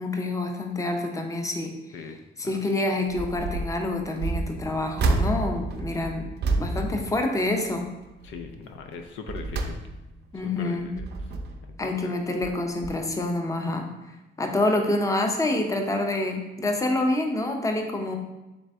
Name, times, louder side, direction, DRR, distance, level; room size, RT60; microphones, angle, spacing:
voice 1, 0.0-1.7 2.4-7.9 10.3-10.9 11.8-18.2, left 2 dB, 15° left, 3 dB, 0.6 m, -27 dB
voice 2, 1.9-2.6 8.2-9.8 10.6-11.1 11.8-12.2, left 5 dB, 75° left, 6 dB, 0.4 m, -40 dB
sound 1, 3.1-3.7 4.1-7.8 8.2-8.5 9.0-10.3 10.8-11.7 12.4-12.6 12.8-12.9, right 3 dB, 55° right, 0.5 m, -29 dB
3.9 x 3.2 x 3.4 m, 1.0 s
cardioid pair, 90°, 20 cm